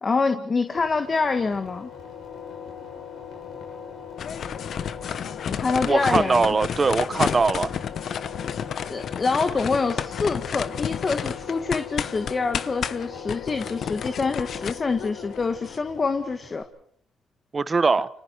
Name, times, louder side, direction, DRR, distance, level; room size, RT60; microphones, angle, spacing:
voice 1, 0.0-1.9 5.5-6.5 8.9-16.6, left 4 dB, 30° left, 1.6 m, -26 dB
sound 1, 0.7-16.6, left 7 dB, 70° left, 7.8 m, -40 dB
sound 2, 4.2-15.8, left 8 dB, 55° left, 1.0 m, -31 dB
voice 2, 5.8-7.7 17.5-18.1, right 4 dB, 30° right, 1.0 m, -21 dB
30.0 x 29.5 x 4.6 m
cardioid pair, 100°, 0 cm